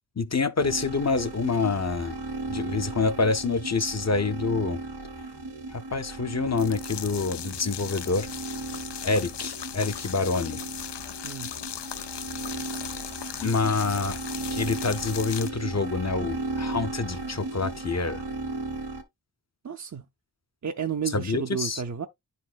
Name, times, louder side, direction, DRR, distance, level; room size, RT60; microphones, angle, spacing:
voice 1, 0.2-2.2 2.5-4.8 5.7-8.3 9.0-10.6 13.4-14.2 14.5-18.2 21.1-21.8, left 4 dB, 40° left, 0.7 m, -27 dB
sound 1, 0.6-19.0, right 3 dB, 85° right, 1.7 m, -36 dB
sound 2, 6.5-15.5, left 9 dB, 85° left, 0.5 m, -38 dB
voice 2, 19.6-20.1 20.6-22.1, right 7 dB, 45° right, 0.6 m, -31 dB
10.5 x 4.1 x 2.3 m
wide cardioid pair, 60°, 40 cm